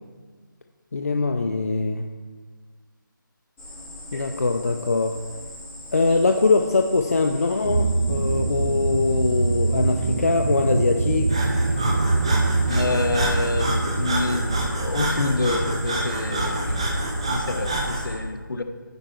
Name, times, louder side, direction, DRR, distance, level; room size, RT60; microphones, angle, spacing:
voice 1, 0.9-2.1 4.1-5.2 5.9-11.4, left 3 dB, 45° left, 5 dB, 0.4 m, -22 dB
Cricket, 3.6-18.1, left 1 dB, 15° left, 2.6 m, -39 dB
sound 1, 7.6-17.9, right 3 dB, 75° right, 0.6 m, -25 dB
Breathing, 11.3-18.1, right 1 dB, 15° right, 0.6 m, -27 dB
voice 2, 12.7-16.7 17.3-18.6, left 3 dB, 70° left, 7 dB, 0.8 m, -27 dB
9.1 x 4.5 x 5.8 m, 1.5 s
figure-of-eight pair, 170°, 11 cm